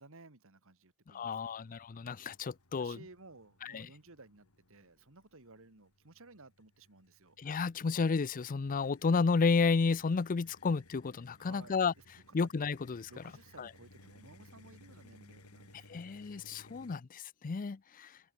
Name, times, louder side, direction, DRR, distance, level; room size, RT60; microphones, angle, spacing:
voice 1, 0.0-1.6 1.9-2.0 2.8-7.4 11.4-12.0 12.4-12.5 13.1-16.4, right 3 dB, 65° right, 2.2 m, -57 dB
voice 2, 1.1-3.0 3.6-3.9 7.4-11.9 12.3-13.1 13.6-13.7 15.9-18.2, left 4 dB, 40° left, 0.5 m, -32 dB
sound 1, 1.3-17.0, left 2 dB, 90° left, 5.2 m, -61 dB
head